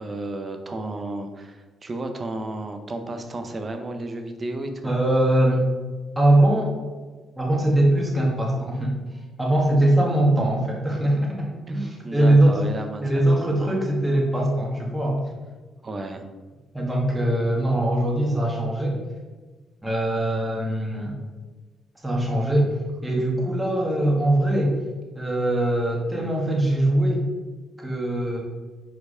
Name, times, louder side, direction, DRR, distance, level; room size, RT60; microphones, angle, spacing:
voice 1, 0.0-4.9 11.7-13.5 15.8-16.3, right 2 dB, 30° right, 6 dB, 0.8 m, -33 dB
voice 2, 4.8-5.7 6.1-6.7 7.4-9.0 9.4-12.6 13.0-15.2 16.7-19.0 19.8-21.1 22.0-22.7 23.0-24.8 25.1-27.2 27.8-28.4, right 1 dB, 10° right, -2 dB, 1.7 m, -21 dB
4.8 x 4.6 x 5.0 m, 1.3 s
cardioid pair, 90°, 0 cm